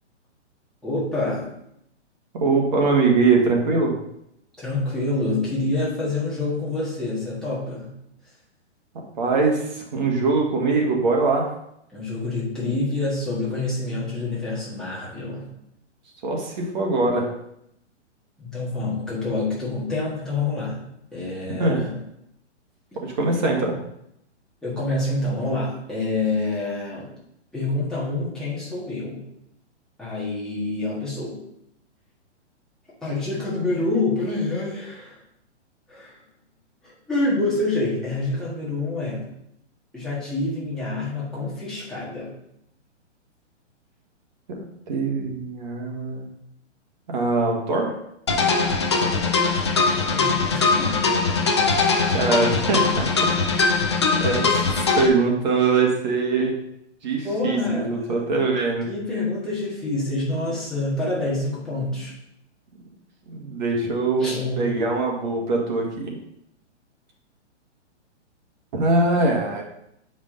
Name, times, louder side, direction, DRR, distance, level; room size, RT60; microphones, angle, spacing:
voice 1, 0.8-1.5 4.6-7.9 11.9-15.5 18.4-20.8 21.1-21.9 22.9-23.0 24.6-27.1 27.5-29.2 30.0-31.4 33.0-35.1 35.9-36.2 36.8-39.3 39.9-42.3 50.1-51.3 57.2-58.2 58.9-62.1 64.2-64.7, left 2 dB, ahead, -9 dB, 1.6 m, -27 dB
voice 2, 2.3-3.9 9.2-11.5 16.2-17.3 21.6-21.8 23.0-23.7 44.5-46.3 47.1-47.9 52.1-53.0 53.5-53.7 54.2-54.7 55.0-56.5 57.0-58.9 63.3-64.3 64.6-66.2 68.7-69.6, right 3 dB, 40° right, 0 dB, 1.7 m, -22 dB
sound 1, 48.3-55.1, left 4 dB, 25° left, 0.4 m, -21 dB
8.0 x 5.2 x 3.8 m, 0.77 s
hypercardioid pair, 165°, 36 cm